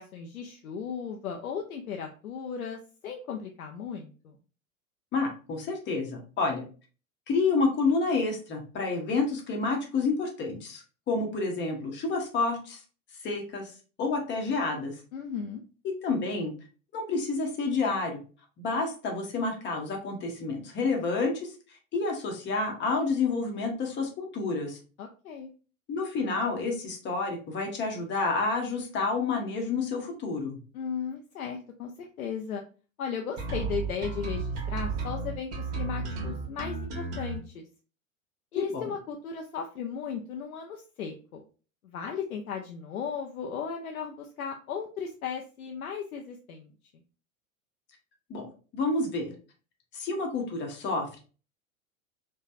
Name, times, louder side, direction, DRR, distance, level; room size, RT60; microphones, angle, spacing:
voice 1, 0.0-4.4 15.1-15.6 25.0-25.5 30.7-32.6 33.0-37.6 38.5-41.4 41.8-46.7, left 6 dB, 85° left, 2 dB, 0.5 m, -36 dB
voice 2, 5.1-6.6 7.3-12.8 13.2-13.7 14.0-15.0 15.8-16.5 16.9-18.2 18.6-21.5 21.9-24.8 25.9-30.6 38.5-38.9 48.3-49.3 49.9-51.2, left 3 dB, 25° left, 2 dB, 0.9 m, -29 dB
sound 1, 33.4-37.4, right 4 dB, 35° right, 1.1 m, -33 dB
3.1 x 2.2 x 2.6 m, 0.37 s
hypercardioid pair, 95°, 42 cm